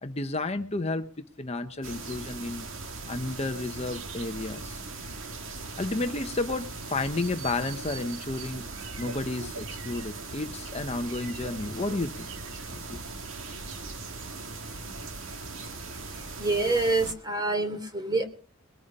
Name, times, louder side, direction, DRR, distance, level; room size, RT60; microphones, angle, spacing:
voice 1, 0.0-2.7 3.1-4.8 5.8-8.6 9.0-12.3 12.7-13.0, left 2 dB, 30° left, 8 dB, 0.9 m, -32 dB
sound 1, 1.8-17.1, right 3 dB, 65° right, 2.2 m, -39 dB
voice 2, 16.4-18.3, right 3 dB, 20° right, 8 dB, 2.9 m, -26 dB
21.5 x 9.3 x 5.5 m, 0.41 s
head